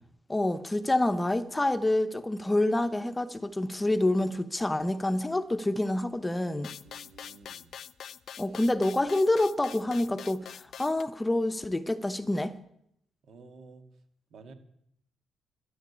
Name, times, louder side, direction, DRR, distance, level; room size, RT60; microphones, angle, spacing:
voice 1, 0.3-6.7 8.4-12.5, left 1 dB, 15° left, 0.9 m, -27 dB
sound 1, 6.6-11.0, left 9 dB, 60° left, 0.6 m, -44 dB
voice 2, 6.8-7.7 8.4-8.6 13.2-13.9 14.3-14.5, right 4 dB, 65° right, 2.4 m, -52 dB
13.0 x 9.4 x 9.9 m
cardioid pair, 90°, 0 cm